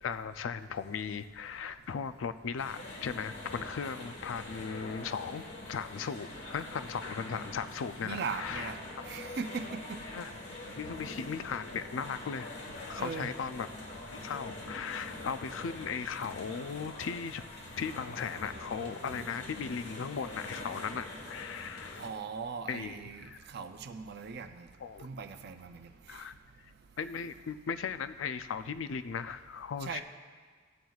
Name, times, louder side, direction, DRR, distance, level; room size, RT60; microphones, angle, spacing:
voice 1, 0.0-8.7 10.1-10.3 10.8-12.5 12.8-13.7 14.1-17.4 17.8-22.0 22.7-23.4 24.8-25.1 26.1-26.4 26.6-26.7 27.0-30.0, left 6 dB, 85° left, 11 dB, 0.4 m, -37 dB
sound 1, 2.6-22.1, left 2 dB, 65° left, 1.4 m, -44 dB
voice 2, 8.0-8.8 9.1-10.0 13.0-13.3 22.0-24.7 25.0-25.9 29.8-30.0, right 5 dB, 55° right, 7 dB, 0.5 m, -39 dB
14.5 x 9.1 x 2.4 m, 1.5 s
head